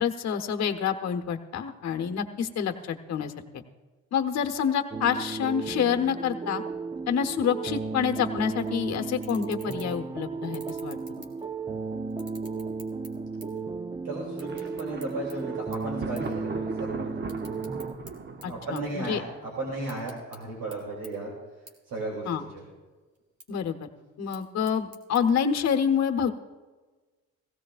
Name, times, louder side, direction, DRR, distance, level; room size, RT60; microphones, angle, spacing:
voice 1, 0.0-3.3 4.1-6.6 7.1-11.3 18.4-19.2 22.3-22.4 23.5-23.9 24.2-26.3, left 7 dB, 60° left, 6 dB, 1.0 m, -27 dB
sound 1, 4.9-17.9, right 4 dB, 15° right, 0.5 m, -34 dB
sound 2, 8.6-8.8 9.1-10.0 10.4-11.7 12.1-13.7 13.9-15.3 15.7-15.9 16.2-16.4 16.7-18.1 18.4-19.4 19.7-20.4 20.7-20.8 21.0-21.1 21.7-21.8 22.1-22.7 23.1-23.5 24.1-25.2, right 2 dB, 55° right, 2.1 m, -49 dB
voice 2, 14.0-17.4 18.5-21.3 21.9-22.6, right 2 dB, 85° right, -3 dB, 2.9 m, -35 dB
Thunder, 14.4-20.2, right 4 dB, 35° right, 0.8 m, -41 dB
16.5 x 16.0 x 2.5 m, 1.3 s
cardioid pair, 90°, 30 cm